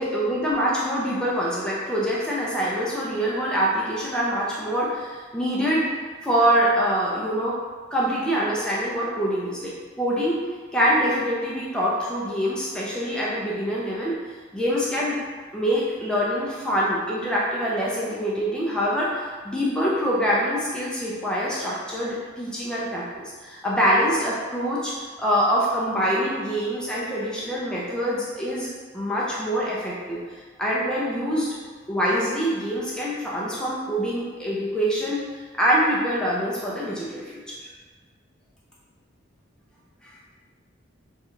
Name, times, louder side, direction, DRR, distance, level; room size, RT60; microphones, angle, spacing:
voice 1, 0.0-5.9 6.2-7.6 7.9-9.7 10.0-10.4 10.7-14.2 14.5-15.2 15.5-24.9 25.2-28.7 28.9-31.5 31.9-35.2 35.5-37.7 40.0-40.1, equal, 5° left, -6 dB, 0.5 m, -25 dB
3.2 x 2.4 x 3.0 m, 1.4 s
head